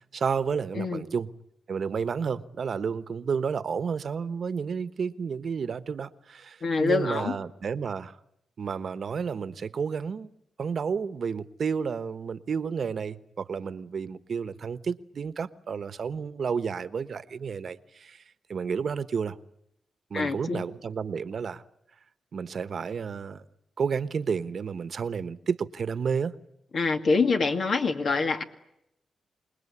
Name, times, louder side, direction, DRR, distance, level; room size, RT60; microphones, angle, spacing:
voice 1, 0.1-1.3 1.7-8.1 8.6-10.3 10.6-18.2 18.5-19.4 20.1-21.6 22.3-23.4 23.8-26.3, right 6 dB, 60° right, 1.2 m, -31 dB
voice 2, 6.6-7.4 20.1-20.6 26.7-28.4, left 4 dB, 60° left, 2.1 m, -25 dB
27.5 x 20.0 x 9.8 m
cardioid pair, 80°, 0 cm